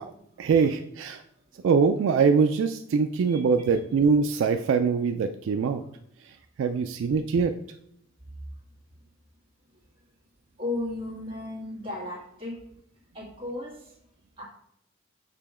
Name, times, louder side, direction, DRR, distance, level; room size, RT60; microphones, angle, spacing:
voice 1, 0.4-1.2 1.6-5.8 6.6-7.5, right 5 dB, 65° right, 7 dB, 0.3 m, -23 dB
voice 2, 10.6-12.6 13.1-13.9 14.4-14.5, left 2 dB, 25° right, -4 dB, 2.0 m, -34 dB
6.7 x 3.0 x 4.8 m, 0.75 s
head